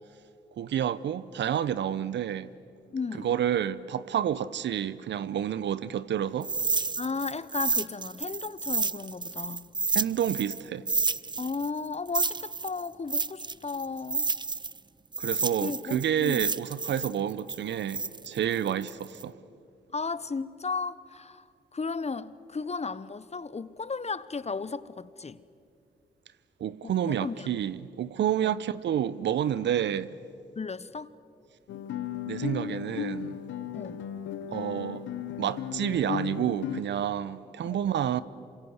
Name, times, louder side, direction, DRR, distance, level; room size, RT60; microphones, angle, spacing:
voice 1, 0.6-2.5 3.2-6.5 9.9-10.8 15.2-19.4 26.6-30.1 32.3-33.4 34.5-35.0 35.4-38.2, right 10 dB, 65° right, 0.8 m, -29 dB
voice 2, 2.9-3.3 7.0-9.7 11.4-14.3 15.6-16.5 19.9-21.4 21.7-25.4 26.8-27.5 28.4-28.5 30.6-31.1 33.7-34.0 37.7-37.8, left 4 dB, 35° left, 1.1 m, -35 dB
sound 1, 6.4-10.6 10.9-14.8 15.1-19.2, right 3 dB, 20° right, 0.7 m, -30 dB
Guitar, 31.7-36.8, left 9 dB, 75° left, 1.1 m, -35 dB
27.5 x 24.5 x 8.0 m
hypercardioid pair, 40°, 20 cm